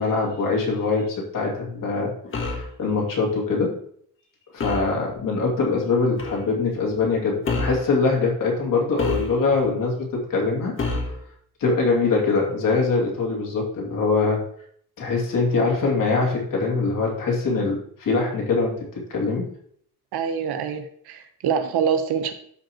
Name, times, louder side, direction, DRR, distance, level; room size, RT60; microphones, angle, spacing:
voice 1, 0.0-3.8 4.5-10.7 11.1-11.2 11.6-14.4 15.0-19.5, left 4 dB, 60° left, -1 dB, 2.6 m, -23 dB
sound 1, 2.3-2.7 4.6-4.9 6.2-6.4 7.4-7.9 9.0-9.6 10.8-11.2, left 3 dB, 35° left, 1.3 m, -27 dB
voice 2, 20.1-22.3, right 7 dB, 90° right, 7 dB, 1.2 m, -25 dB
13.0 x 5.4 x 3.0 m, 0.64 s
cardioid pair, 170°, 38 cm